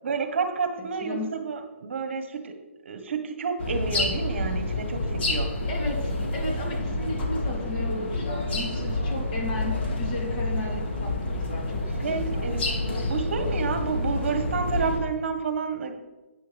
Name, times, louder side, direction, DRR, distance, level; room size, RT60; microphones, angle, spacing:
voice 1, 0.0-2.5 2.8-5.5 12.0-15.9, right 5 dB, 60° right, 7 dB, 1.3 m, -30 dB
voice 2, 1.0-1.3 5.7-11.8 12.1-12.2 12.5-12.7, left 1 dB, 35° left, -1 dB, 2.7 m, -35 dB
sound 1, 3.6-15.0, left 2 dB, 50° left, 2.4 m, -28 dB
11.5 x 8.8 x 3.4 m, 1.1 s
hypercardioid pair, 160°, 7 cm